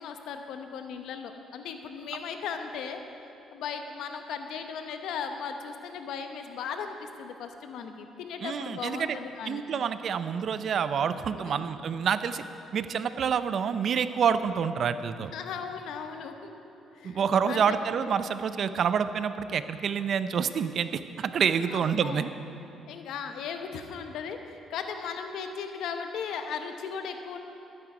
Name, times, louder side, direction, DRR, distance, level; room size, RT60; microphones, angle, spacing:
voice 1, 0.0-3.0 3.5-9.6 11.3-11.6 15.3-16.6 16.9-17.8 21.7-22.2 22.9-27.4, left 6 dB, 80° left, 6 dB, 0.9 m, -37 dB
voice 2, 8.4-9.2 9.4-12.4 12.7-15.3 17.0-22.3, right 7 dB, 60° right, 12 dB, 0.5 m, -27 dB
12.5 x 9.7 x 5.0 m, 2.9 s
cardioid pair, 90°, 0 cm